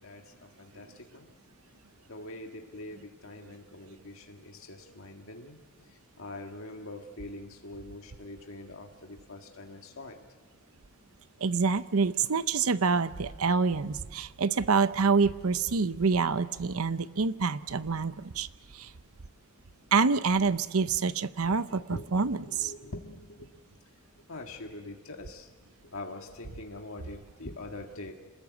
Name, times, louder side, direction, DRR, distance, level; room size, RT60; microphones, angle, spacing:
voice 1, 0.0-1.3 2.1-5.6 5.9-10.2 21.9-23.5 24.3-25.5 25.8-28.1, left 2 dB, 65° left, 3 dB, 1.8 m, -44 dB
voice 2, 11.4-18.5 18.8-18.9 19.9-22.7, right 5 dB, 70° right, 14 dB, 0.8 m, -27 dB
27.0 x 21.0 x 8.3 m, 1.4 s
head